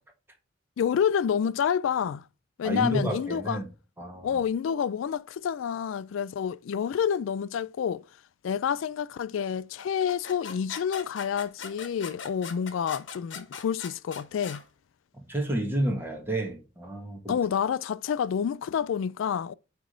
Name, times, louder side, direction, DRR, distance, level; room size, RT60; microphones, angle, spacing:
voice 1, 0.8-2.2 2.6-3.6 4.2-8.0 8.4-14.6 17.3-19.5, left 7 dB, 85° left, 0.3 m, -28 dB
voice 2, 2.6-3.7 4.0-4.4 15.1-17.3, right 1 dB, 10° right, 1.6 m, -30 dB
sound 1, 9.8-14.6, left 6 dB, 70° left, 1.2 m, -41 dB
8.6 x 3.4 x 3.7 m
head